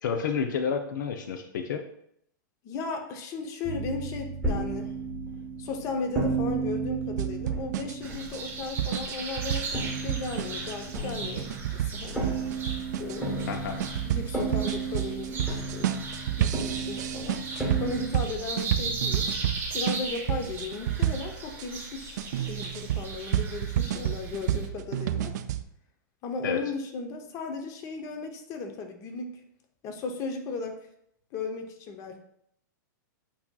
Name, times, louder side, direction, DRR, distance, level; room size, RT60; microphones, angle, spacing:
voice 1, 0.0-1.8 13.5-13.8 26.4-26.6, left 6 dB, 70° left, 6 dB, 0.5 m, -30 dB
voice 2, 2.6-4.9 5.6-12.2 13.0-13.6 14.0-15.9 16.4-17.4 17.8-19.3 19.7-25.3 26.2-29.4 29.8-30.8 31.3-32.2, left 4 dB, 30° left, 4 dB, 0.7 m, -36 dB
sound 1, 3.6-9.4 9.7-18.1, right 3 dB, 10° left, 1.3 m, -33 dB
sound 2, 7.2-21.7 22.2-25.6, right 11 dB, 60° right, 0.3 m, -30 dB
sound 3, 8.0-24.7, right 3 dB, 20° right, 0.9 m, -38 dB
8.3 x 2.8 x 2.3 m, 0.72 s
hypercardioid pair, 140°, 11 cm